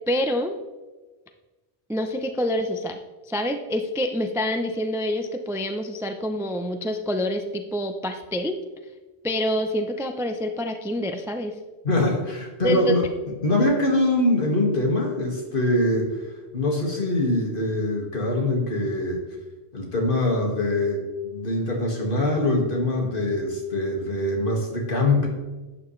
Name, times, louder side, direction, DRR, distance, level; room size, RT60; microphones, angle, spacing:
voice 1, 0.1-0.5 1.9-3.0 3.3-8.6 9.2-11.5 12.6-13.0, left 1 dB, 5° right, 5 dB, 0.4 m, -26 dB
voice 2, 11.8-13.1 13.4-16.2 16.5-19.2 19.7-25.3, left 1 dB, 50° left, 0 dB, 2.1 m, -23 dB
12.0 x 8.7 x 3.2 m, 1.2 s
omnidirectional pair, 1.1 m